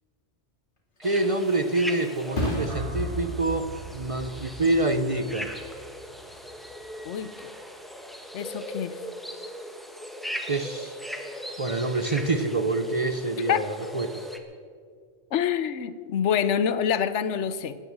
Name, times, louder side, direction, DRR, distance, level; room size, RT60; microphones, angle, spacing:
Thump thud, 0.8-8.2 8.6-9.1, left 1 dB, 45° left, 2.5 m, -38 dB
sound 1, 1.0-14.4, equal, ahead, 1.1 m, -39 dB
voice 1, 1.0-5.5 10.5-11.0 11.6-14.2, right 2 dB, 35° right, 9 dB, 0.6 m, -26 dB
sound 2, 2.7-6.9, left 1 dB, 70° right, 1.8 m, -39 dB
voice 2, 7.0-7.3 8.3-9.0 13.5-13.6 15.3-17.8, left 8 dB, 75° left, 14 dB, 1.0 m, -26 dB
17.5 x 10.5 x 7.4 m, 2.1 s
omnidirectional pair, 1.2 m